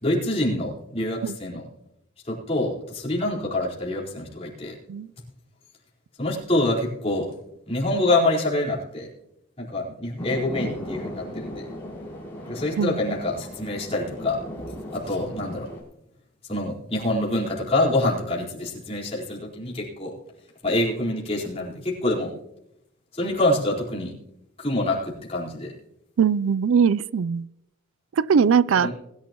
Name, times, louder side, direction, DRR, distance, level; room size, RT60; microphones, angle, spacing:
voice 1, 0.0-1.6 2.3-4.7 6.2-7.3 7.7-9.1 9.6-11.6 12.5-14.4 15.1-15.7 16.5-20.1 20.6-22.3 23.1-24.1 24.6-25.7 28.8-28.9, left 1 dB, 30° left, 4.3 m, -26 dB
sound 1, 10.2-15.8, equal, 10° left, 5.4 m, -37 dB
voice 2, 26.2-27.5 28.2-28.9, right 6 dB, 85° right, 0.4 m, -20 dB
21.0 x 11.5 x 3.0 m
head